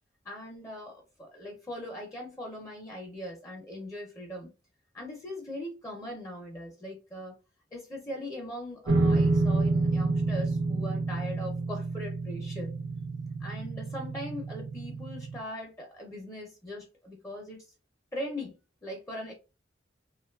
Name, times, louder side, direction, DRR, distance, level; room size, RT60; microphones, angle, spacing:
voice 1, 0.2-4.5 4.9-7.4 7.7-12.7 13.4-17.6 18.1-18.5 18.8-19.3, left 1 dB, 20° left, 0.5 m, -40 dB
sound 1, 8.9-15.4, right 3 dB, 75° right, 0.4 m, -29 dB
2.7 x 2.2 x 2.2 m
head